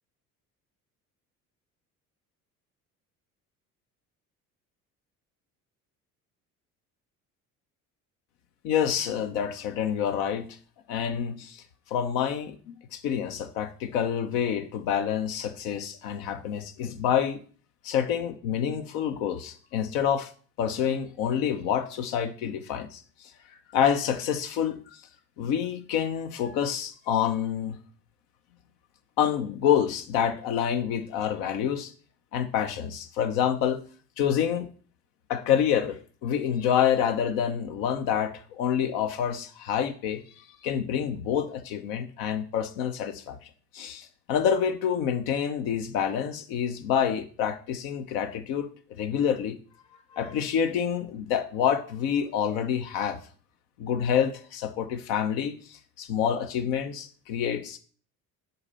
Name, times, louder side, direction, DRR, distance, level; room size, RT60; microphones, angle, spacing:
voice 1, 8.6-10.5 10.9-11.6 11.9-17.4 17.8-20.3 20.6-23.0 23.7-24.8 25.4-27.8 29.2-31.9 32.3-33.8 34.2-34.7 35.3-40.2 40.6-43.4 43.7-49.6 50.1-53.2 53.8-57.8, left 8 dB, 65° left, 8 dB, 1.0 m, -27 dB
6.9 x 4.2 x 5.6 m, 0.43 s
hypercardioid pair, 60°, 45 cm